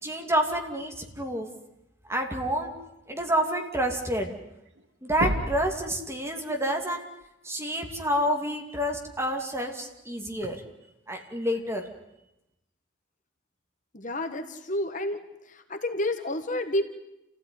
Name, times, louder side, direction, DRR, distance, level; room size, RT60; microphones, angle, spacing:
voice 1, 0.0-1.5 2.1-2.7 3.1-4.3 5.0-7.0 7.4-10.6 11.1-11.9, equal, 15° right, 3 dB, 2.7 m, -28 dB
sound 1, 4.6-4.8 5.1-5.8 7.5-7.6 9.4-9.5 10.4-10.5, equal, 80° right, 2.0 m, -30 dB
voice 2, 13.9-15.2 15.5-16.9, left 1 dB, 40° left, 7 dB, 1.6 m, -30 dB
28.5 x 16.0 x 9.9 m, 0.91 s
head